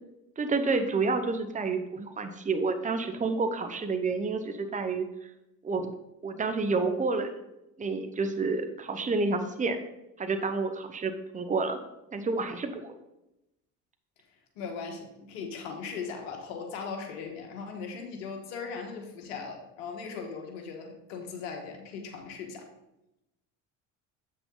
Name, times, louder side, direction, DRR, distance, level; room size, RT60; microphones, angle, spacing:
voice 1, 0.4-5.1 5.6-5.9 6.2-7.3 7.8-9.8 10.2-11.8 12.1-12.9, right 3 dB, 20° right, 7 dB, 1.0 m, -29 dB
voice 2, 14.6-22.7, left 5 dB, 85° left, 3 dB, 1.5 m, -39 dB
7.8 x 6.3 x 3.9 m, 0.89 s
supercardioid pair, 80°, 37 cm